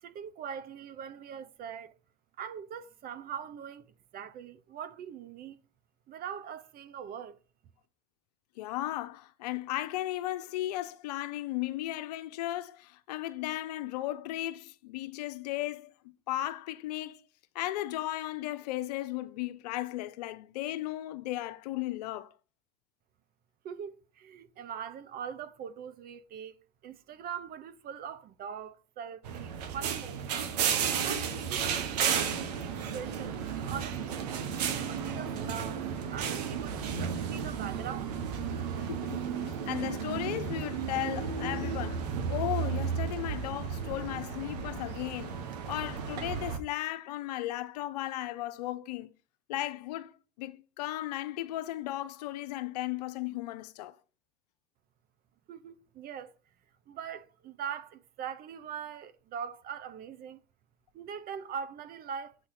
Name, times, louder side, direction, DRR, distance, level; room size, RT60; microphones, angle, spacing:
voice 1, 0.0-1.9 2.4-3.9 4.1-5.6 6.1-7.4 23.6-26.6 26.8-30.5 31.0-32.2 32.5-33.4 33.7-34.3 34.7-35.8 36.1-38.2 55.5-56.3 56.9-60.4 60.9-62.5, right 8 dB, 45° right, 0.9 m, -42 dB
voice 2, 8.6-15.9 16.3-17.2 17.5-22.3 38.8-49.1 49.5-54.0, left 15 dB, 80° left, 0.7 m, -36 dB
sound 1, 29.2-46.6, right 7 dB, 80° right, 1.2 m, -33 dB
7.6 x 4.1 x 4.8 m
hypercardioid pair, 90°, 20 cm